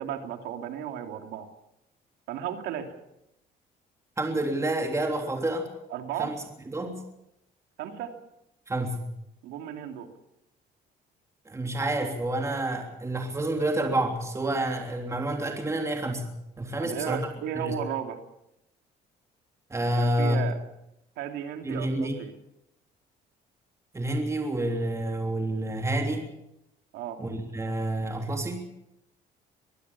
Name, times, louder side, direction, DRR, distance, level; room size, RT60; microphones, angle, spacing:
voice 1, 0.0-1.5 2.3-2.9 5.9-6.3 7.8-8.1 9.4-10.1 16.8-18.2 19.9-20.5 21.2-22.3 26.9-27.2, right 9 dB, 85° right, 5 dB, 2.9 m, -34 dB
voice 2, 4.2-5.7 6.2-6.3 6.6-7.0 8.7-9.1 11.4-17.3 17.5-17.7 19.7-20.4 21.6-22.2 23.9-26.3 27.2-28.7, right 1 dB, 15° right, 2 dB, 3.3 m, -29 dB
23.0 x 16.0 x 7.2 m, 0.84 s
cardioid pair, 110°, 17 cm